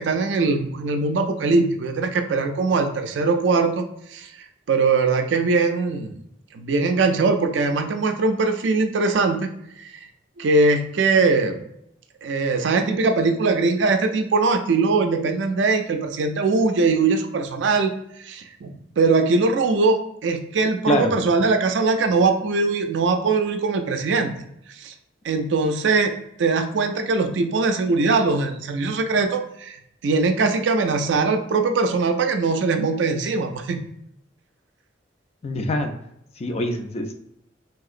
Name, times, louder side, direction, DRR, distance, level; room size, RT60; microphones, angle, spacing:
voice 1, 0.0-3.8 4.1-4.3 4.7-6.2 6.5-9.5 9.8-9.9 10.4-11.7 12.2-17.9 18.2-24.4 24.8-24.9 25.2-29.8 30.0-33.8, right 3 dB, 65° right, 6 dB, 0.4 m, -21 dB
voice 2, 35.4-35.9 36.4-37.1, left 1 dB, 35° left, 5 dB, 0.4 m, -24 dB
3.3 x 2.8 x 2.4 m, 0.76 s
head